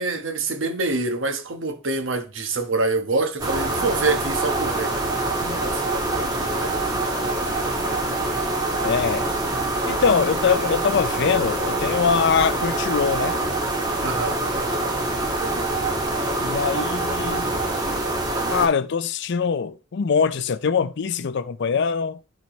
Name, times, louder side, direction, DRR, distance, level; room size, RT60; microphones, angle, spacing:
voice 1, 0.0-5.2 5.5-6.9 7.2-7.8 14.0-14.7 15.4-16.0, right 3 dB, 70° right, 1.2 m, -27 dB
sound 1, 3.4-18.7, right 2 dB, 20° right, 1.5 m, -25 dB
voice 2, 8.8-9.3 9.9-13.4 16.4-17.6 18.4-22.2, left 6 dB, 60° left, 0.4 m, -23 dB
11.5 x 4.6 x 3.1 m
head